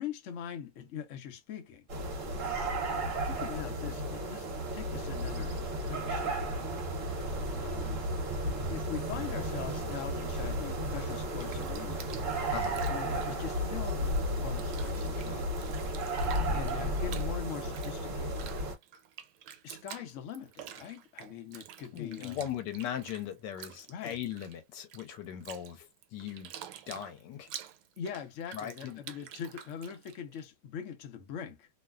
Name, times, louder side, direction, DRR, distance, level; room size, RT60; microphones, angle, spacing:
voice 1, 0.0-1.9 2.8-4.5 4.7-6.4 7.2-7.3 7.6-8.1 8.7-12.1 12.9-15.7 16.2-18.5 19.6-22.5 23.9-24.2 28.0-31.7, left 8 dB, 60° left, 0.9 m, -42 dB
sound 1, 1.9-18.7, right 1 dB, 50° right, 1.2 m, -33 dB
Bathtub (filling or washing), 11.1-14.2 14.5-30.4, right 10 dB, 90° right, 1.3 m, -49 dB
voice 2, 12.5-12.9 21.9-26.5 26.9-27.5 28.5-29.0, left 10 dB, 85° left, 1.3 m, -39 dB
3.0 x 2.2 x 2.3 m
omnidirectional pair, 1.9 m